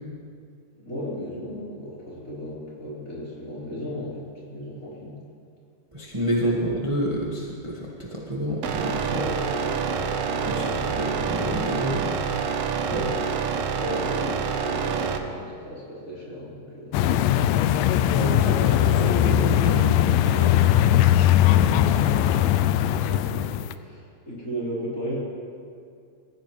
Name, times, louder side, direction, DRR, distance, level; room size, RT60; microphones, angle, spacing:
voice 1, 0.7-5.2 6.5-6.7 9.0-11.2 12.8-17.0 18.5-19.0 19.9-25.2, equal, 20° left, -8 dB, 4.9 m, -35 dB
voice 2, 5.9-9.1 10.4-10.6 10.9-12.2 12.9-13.1 18.1-19.9, equal, 20° right, -4 dB, 0.8 m, -29 dB
sound 1, 8.6-15.2, right 6 dB, 75° right, 1.5 m, -27 dB
sound 2, 16.9-23.7, left 11 dB, 85° left, 2.2 m, -20 dB
26.5 x 15.5 x 3.3 m, 2.3 s
omnidirectional pair, 4.0 m